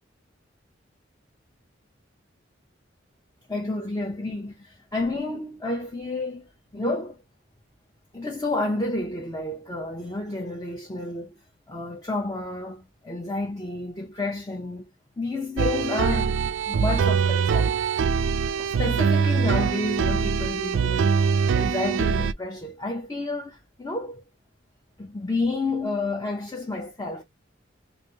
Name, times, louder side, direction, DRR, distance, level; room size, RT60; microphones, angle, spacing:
voice 1, 3.5-7.2 8.1-11.4 11.7-14.9 15.2-17.8 18.6-21.1 21.5-24.2 25.0-27.2, left 2 dB, 20° left, 0.7 m, -30 dB
sound 1, 15.6-22.3, right 6 dB, 80° right, 0.3 m, -23 dB
3.3 x 2.5 x 3.0 m
head